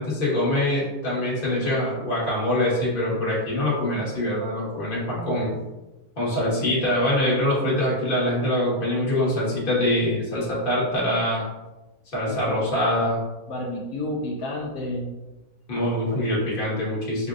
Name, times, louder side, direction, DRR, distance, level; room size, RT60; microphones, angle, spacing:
voice 1, 0.0-5.6 6.2-11.4 12.1-13.2 15.7-17.3, left 1 dB, 35° left, -5 dB, 1.4 m, -24 dB
voice 2, 5.1-5.6 6.5-6.6 12.3-12.6 13.5-15.1 16.1-16.3, left 1 dB, 75° left, -2 dB, 1.2 m, -31 dB
6.4 x 2.6 x 2.4 m, 1.1 s
omnidirectional pair, 1.7 m